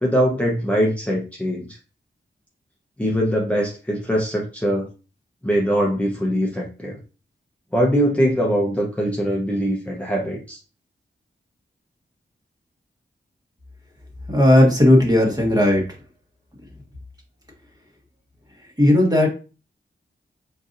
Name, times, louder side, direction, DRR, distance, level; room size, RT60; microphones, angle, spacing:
voice 1, 0.0-1.7 3.0-4.9 5.4-7.0 7.7-10.6, equal, 5° left, -3 dB, 1.0 m, -22 dB
voice 2, 14.3-15.8 18.8-19.3, left 1 dB, 20° right, -1 dB, 1.5 m, -15 dB
4.6 x 4.0 x 2.6 m, 0.33 s
wide cardioid pair, 120°, 19 cm